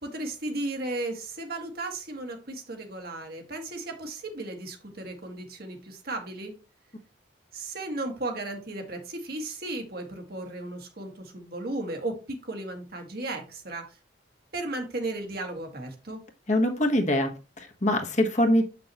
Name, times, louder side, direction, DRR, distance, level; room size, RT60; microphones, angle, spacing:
voice 1, 0.0-6.5 7.5-14.0 14.5-16.2, right 2 dB, 55° right, 1.7 m, -35 dB
voice 2, 16.5-18.6, left 1 dB, 40° left, 1.3 m, -24 dB
7.6 x 6.1 x 3.0 m
head